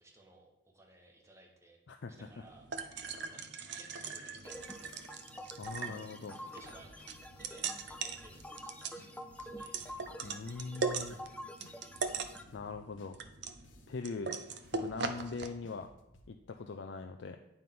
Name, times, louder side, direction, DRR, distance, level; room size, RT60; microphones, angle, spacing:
voice 1, 0.0-1.8 2.1-2.7 3.1-5.2 5.9-10.2 10.5-11.6, right 1 dB, 15° right, 0 dB, 1.3 m, -60 dB
sound 1, 2.1-15.5, right 4 dB, 60° right, 0.6 m, -41 dB
sound 2, 4.4-12.4, left 1 dB, 5° left, 0.4 m, -48 dB
sound 3, 5.6-6.0 6.3-8.7 9.0-11.3 11.6-14.0 14.3-16.3, left 1 dB, 80° left, 0.9 m, -60 dB
voice 2, 5.6-6.3 10.2-11.2 12.5-13.2 13.9-14.4 14.7-15.9 16.3-17.4, left 4 dB, 65° left, 5 dB, 0.4 m, -41 dB
9.2 x 3.6 x 5.8 m, 0.90 s
head